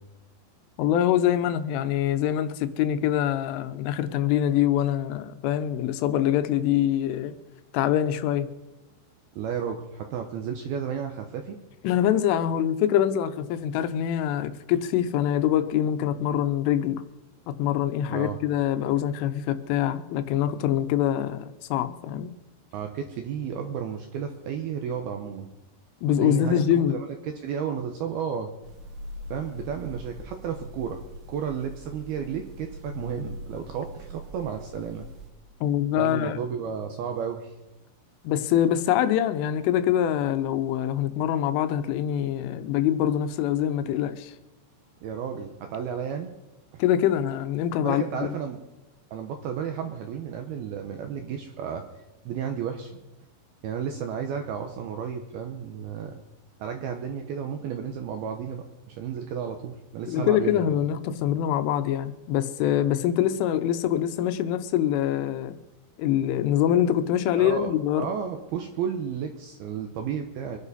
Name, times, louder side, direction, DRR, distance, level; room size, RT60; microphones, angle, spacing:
voice 1, 0.8-7.3 7.7-8.5 11.8-17.0 17.5-22.3 26.0-27.0 35.6-36.4 38.2-44.4 46.8-48.4 60.1-65.6 66.0-68.1, left 10 dB, 85° left, 3.3 m, -24 dB
voice 2, 9.4-11.6 18.1-18.4 22.7-25.5 26.2-28.5 29.3-31.0 31.3-35.1 36.0-37.5 45.0-46.3 46.7-46.8 47.8-48.6 49.1-51.8 52.3-53.0 53.6-56.2 56.6-60.7 67.4-70.6, right 7 dB, 75° right, 2.3 m, -32 dB
sound 1, 28.6-35.3, equal, 60° right, 2.2 m, -42 dB
25.0 x 11.0 x 4.2 m
omnidirectional pair, 5.6 m